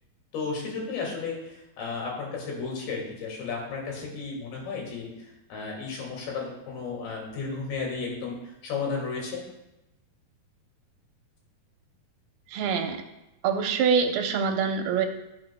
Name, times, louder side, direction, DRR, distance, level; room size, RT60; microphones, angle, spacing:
voice 1, 0.3-5.1 5.5-8.4 8.6-9.4, left 4 dB, 80° left, -1 dB, 4.2 m, -33 dB
voice 2, 12.5-13.0 13.4-15.1, right 6 dB, 80° right, 5 dB, 2.8 m, -25 dB
16.0 x 7.3 x 2.2 m, 0.92 s
omnidirectional pair, 4.3 m